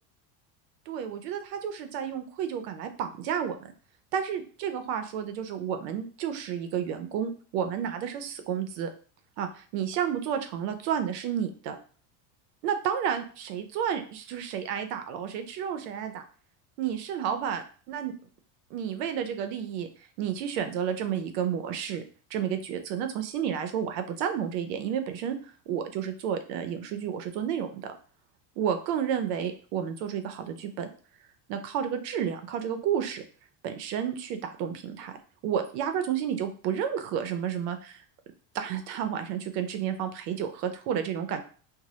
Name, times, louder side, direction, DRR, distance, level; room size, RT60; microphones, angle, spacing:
voice 1, 0.9-3.6 4.1-8.9 9.4-11.8 12.6-16.2 16.8-18.1 18.7-19.9 20.2-22.0 22.3-27.9 28.6-30.9 31.5-33.2 33.6-35.2 35.4-38.0 38.5-41.4, right 8 dB, 80° right, 8 dB, 0.6 m, -31 dB
2.1 x 2.0 x 2.8 m, 0.40 s
supercardioid pair, 140°, 48 cm